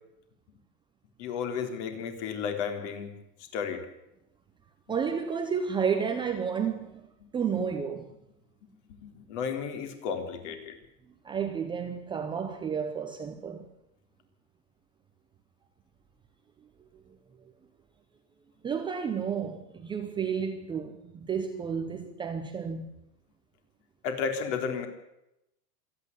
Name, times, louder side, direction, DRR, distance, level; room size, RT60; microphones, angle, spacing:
voice 1, 1.2-3.1 3.4-3.9 8.6-8.7 9.0-10.7 24.0-24.9, left 6 dB, 50° left, 3.9 m, -33 dB
voice 2, 4.9-7.1 7.3-8.0 11.2-13.7 18.6-22.9, right 6 dB, 10° right, 0.7 m, -31 dB
26.5 x 9.9 x 9.9 m
supercardioid pair, 165°, 47 cm